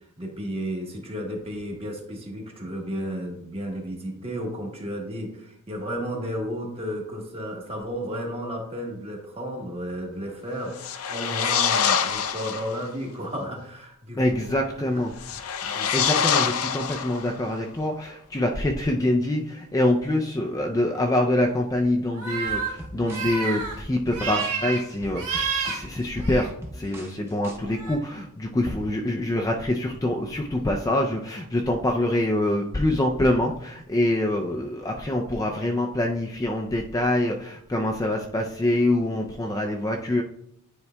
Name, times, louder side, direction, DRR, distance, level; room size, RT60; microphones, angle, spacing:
voice 1, 0.2-14.2 14.8-14.9 15.6-16.2, equal, 25° right, 0 dB, 1.2 m, -33 dB
sound 1, 10.7-12.8 15.2-17.5, left 7 dB, 75° left, 0.5 m, -25 dB
voice 2, 14.2-15.2 15.6-40.2, left 1 dB, 15° left, 2 dB, 0.4 m, -25 dB
sound 2, 22.1-22.7 23.0-23.7 24.1-24.8 25.1-25.8 26.2-26.5 27.6-28.0, right 5 dB, 90° right, 1.6 m, -29 dB
sound 3, 22.5-27.6, equal, 10° right, 0.8 m, -42 dB
9.6 x 4.6 x 2.2 m, 0.73 s
head